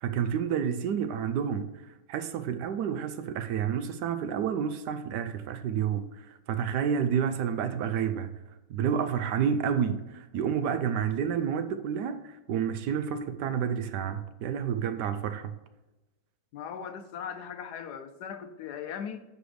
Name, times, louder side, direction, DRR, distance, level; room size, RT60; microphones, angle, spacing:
voice 1, 0.0-8.3 8.7-15.5, right 8 dB, 75° right, 1.1 m, -30 dB
voice 2, 16.5-19.2, left 7 dB, 70° left, 1.0 m, -39 dB
6.3 x 5.1 x 4.9 m
omnidirectional pair, 2.0 m